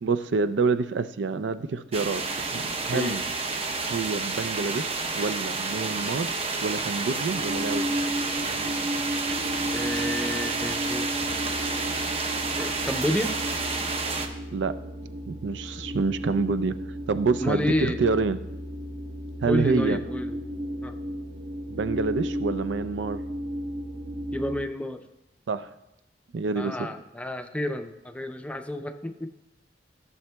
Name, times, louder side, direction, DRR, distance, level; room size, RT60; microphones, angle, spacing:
voice 1, 0.0-2.2 2.5-3.2 3.9-6.3 6.6-7.9 14.5-14.7 15.3-16.8 17.1-18.4 19.4-20.0 21.7-23.2 25.5-25.7 26.3-26.9, right 4 dB, 85° right, 13 dB, 0.4 m, -27 dB
sound 1, 1.9-14.3, right 3 dB, 35° right, 0.7 m, -30 dB
voice 2, 2.9-3.2 9.7-11.1 12.5-13.4 17.4-18.0 19.5-20.4 20.8-20.9 24.3-25.1 26.6-29.3, left 1 dB, 5° left, 8 dB, 0.4 m, -30 dB
sound 2, 7.3-24.6, equal, 60° right, 1.1 m, -34 dB
15.0 x 6.9 x 2.2 m, 0.91 s
head